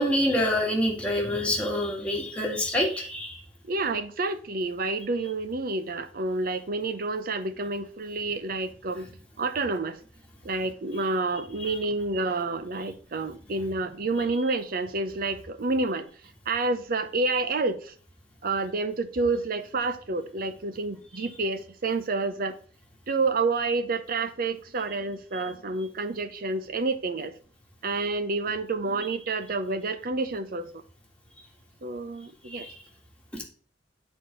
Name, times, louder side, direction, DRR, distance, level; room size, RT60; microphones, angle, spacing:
voice 1, 0.0-3.4 32.5-32.8, left 1 dB, 5° left, 1.9 m, -26 dB
voice 2, 3.7-10.0 10.4-16.1 16.5-17.9 18.4-22.6 23.1-27.3 27.8-30.7 31.8-32.7, right 3 dB, 50° right, 0.7 m, -29 dB
8.4 x 4.3 x 4.9 m
head